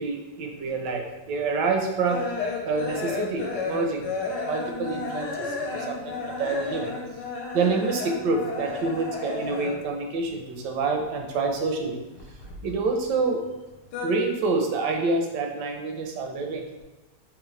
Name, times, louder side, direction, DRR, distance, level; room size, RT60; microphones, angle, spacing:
voice 1, 0.0-2.3 2.6-4.1 4.4-6.9 7.5-12.0 12.6-13.4 14.0-16.8, right 3 dB, 75° right, 3 dB, 1.2 m, -27 dB
sound 1, 1.2-10.0 10.2-11.5 11.7-13.1 13.4-14.1, left 4 dB, 80° left, 1.3 m, -33 dB
3.7 x 3.0 x 3.1 m, 1.1 s
omnidirectional pair, 1.9 m